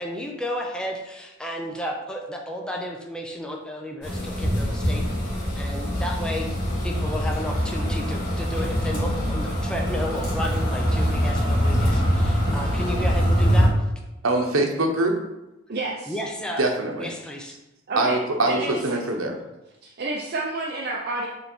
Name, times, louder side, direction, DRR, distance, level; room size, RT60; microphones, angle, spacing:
voice 1, 0.0-5.0 5.6-6.5 6.8-13.7 16.1-16.7 17.0-17.6 18.4-18.6, equal, 5° left, 0 dB, 0.7 m, -32 dB
sound 1, 4.0-13.7, equal, 50° left, 1.9 m, -23 dB
voice 2, 14.2-15.2 16.6-17.1 18.0-19.4, right 2 dB, 80° right, 3 dB, 1.0 m, -23 dB
voice 3, 15.7-16.2 17.9-18.2 18.5-19.0 19.8-21.3, right 2 dB, 50° right, -2 dB, 0.7 m, -29 dB
6.7 x 3.4 x 4.4 m, 0.98 s
head